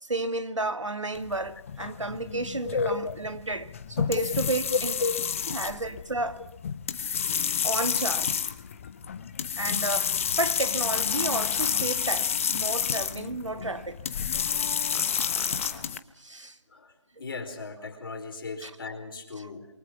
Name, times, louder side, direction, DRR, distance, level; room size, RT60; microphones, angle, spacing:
voice 1, 0.1-5.0 5.4-6.4 7.6-8.4 9.6-14.0 16.2-16.5 18.6-18.8 19.3-19.5, right 2 dB, 85° right, 2.1 m, -32 dB
sound 1, 1.2-16.0, left 7 dB, 25° left, 1.0 m, -30 dB
voice 2, 2.6-3.2 4.7-5.1 5.8-5.9 16.7-16.9 17.2-19.7, left 4 dB, 45° left, 4.7 m, -32 dB
sound 2, 10.9-11.7 14.9-15.7, right 1 dB, 5° right, 2.5 m, -41 dB
27.0 x 23.5 x 5.8 m
figure-of-eight pair, 155°, 16 cm